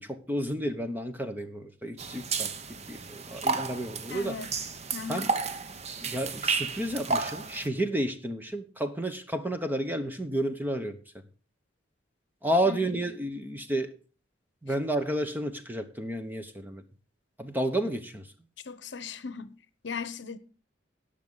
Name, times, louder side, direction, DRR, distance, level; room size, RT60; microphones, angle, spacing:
voice 1, 0.0-4.4 5.1-5.3 6.0-11.0 12.4-13.9 14.6-16.8 17.4-18.3, right 1 dB, 10° right, 1.0 m, -31 dB
sound 1, 2.0-7.7, right 4 dB, 35° right, 0.7 m, -32 dB
voice 2, 4.1-4.5 4.9-5.3 12.6-13.0 18.6-19.6 19.8-20.4, left 5 dB, 65° left, 0.9 m, -38 dB
18.5 x 6.5 x 4.0 m
head